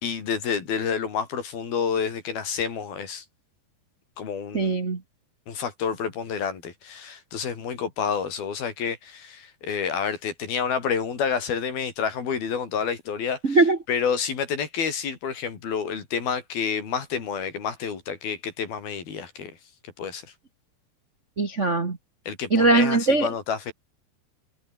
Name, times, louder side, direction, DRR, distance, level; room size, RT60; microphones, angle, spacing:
voice 1, 0.0-3.2 4.2-4.8 5.5-13.6 13.9-19.5 20.0-20.2 22.3-23.7, left 6 dB, 65° left, 5.7 m, -29 dB
voice 2, 4.5-5.0 13.4-13.8 21.4-22.0 22.5-23.3, right 3 dB, 80° right, 0.6 m, -20 dB
omnidirectional pair, 4.8 m